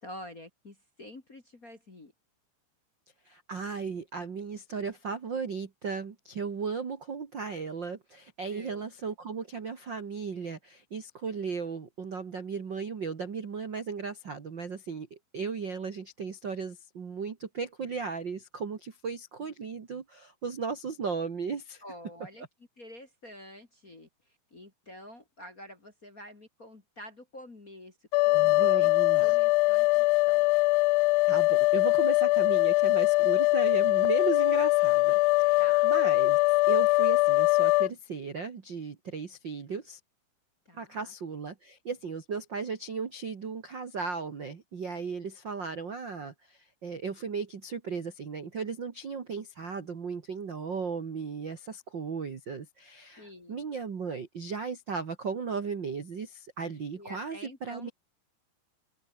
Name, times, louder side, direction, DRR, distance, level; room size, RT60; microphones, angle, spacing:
voice 1, 0.0-2.1 8.5-8.9 21.8-22.5 22.8-28.0 28.3-28.9 29.2-30.5 35.6-35.9 40.7-41.1 53.2-53.7 57.0-57.9, left 1 dB, 30° left, 1.8 m, -48 dB
voice 2, 3.2-21.8 28.3-29.3 31.3-36.4 36.7-40.0 40.8-57.9, right 5 dB, 60° right, 1.1 m, -36 dB
sound 1, 28.1-37.9, left 23 dB, 85° left, 3.0 m, -22 dB
omnidirectional pair, 5.3 m